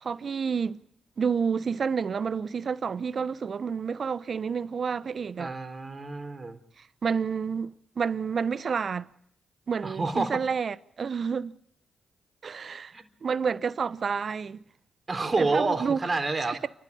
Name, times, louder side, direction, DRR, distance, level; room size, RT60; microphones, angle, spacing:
voice 1, 0.0-0.8 1.2-5.5 7.0-9.1 9.7-11.6 12.4-12.9 13.2-14.6 15.4-16.0 16.4-16.7, right 6 dB, 55° right, 0.9 m, -29 dB
voice 2, 5.4-6.6 9.8-10.4 12.9-13.0 15.1-16.6, right 3 dB, 40° right, 3.8 m, -28 dB
29.0 x 12.5 x 8.6 m
supercardioid pair, 45°, 0 cm